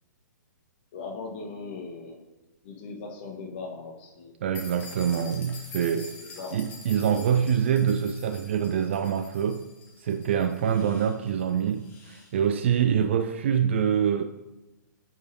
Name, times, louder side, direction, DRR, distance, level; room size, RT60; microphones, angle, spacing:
voice 1, 0.9-2.2 2.6-4.3 6.2-6.6, left 4 dB, 35° left, 1 dB, 1.2 m, -39 dB
voice 2, 4.4-6.1 6.5-9.6 10.0-14.2, right 8 dB, 40° right, 8 dB, 0.4 m, -25 dB
sound 1, 4.5-12.3, left 4 dB, 20° left, 1.0 m, -47 dB
7.6 x 5.3 x 2.7 m, 1.0 s
figure-of-eight pair, 120°, 10 cm